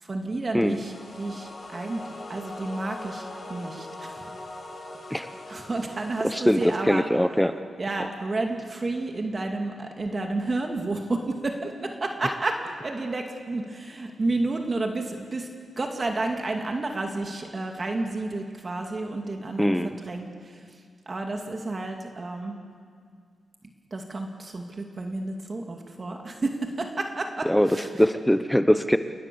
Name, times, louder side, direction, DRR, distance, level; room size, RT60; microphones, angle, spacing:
voice 1, 0.0-4.3 5.1-5.2 5.5-7.1 7.8-15.5 15.8-20.8 21.1-22.6 23.9-28.0, right 2 dB, 35° right, 3 dB, 2.4 m, -31 dB
sound 1, 0.7-6.8, left 2 dB, 40° left, 6.1 m, -41 dB
voice 2, 6.3-7.6 19.6-20.0 27.5-27.7 28.0-29.0, equal, 5° left, 10 dB, 0.9 m, -22 dB
29.0 x 19.0 x 7.0 m, 2.1 s
cardioid pair, 75°, 0 cm